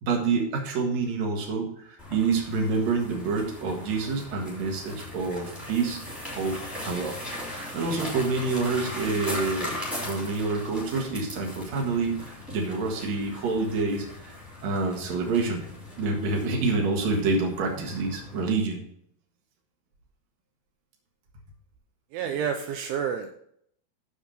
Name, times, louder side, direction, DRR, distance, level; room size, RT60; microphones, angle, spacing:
voice 1, 0.0-6.0 6.3-6.6 6.8-15.6 16.0-18.8, right 4 dB, 60° right, 1 dB, 1.8 m, -27 dB
sound 1, 2.0-18.5, left 1 dB, ahead, 2.1 m, -39 dB
voice 2, 22.1-23.3, right 7 dB, 80° right, 5 dB, 2.9 m, -29 dB
7.2 x 7.1 x 6.3 m, 0.68 s
omnidirectional pair, 5.7 m